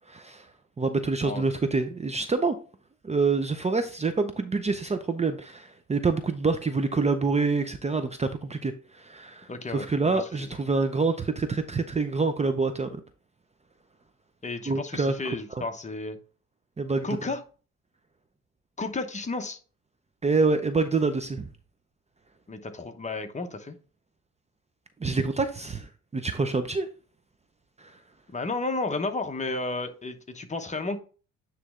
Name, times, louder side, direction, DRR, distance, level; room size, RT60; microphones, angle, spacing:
voice 1, 0.1-0.5 0.8-2.6 3.0-13.0 14.7-15.3 16.8-17.1 20.2-21.5 25.0-26.9 27.8-27.9, right 4 dB, 20° right, 0.6 m, -26 dB
voice 2, 9.5-10.5 14.4-16.2 17.0-17.4 18.8-19.6 22.5-23.8 28.3-31.0, left 3 dB, 25° left, 1.0 m, -32 dB
9.5 x 3.2 x 3.7 m
cardioid pair, 90°, 30 cm